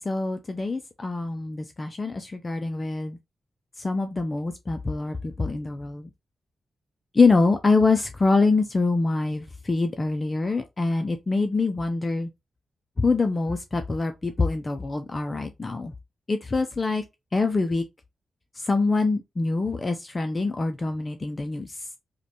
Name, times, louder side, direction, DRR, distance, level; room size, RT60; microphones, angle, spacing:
voice 1, 0.0-3.2 3.8-6.1 7.1-12.3 13.0-15.9 16.3-17.0 17.3-17.8 18.6-21.8, left 3 dB, 25° left, 0.4 m, -25 dB
5.1 x 2.2 x 2.8 m
wide cardioid pair, 155°, 0 cm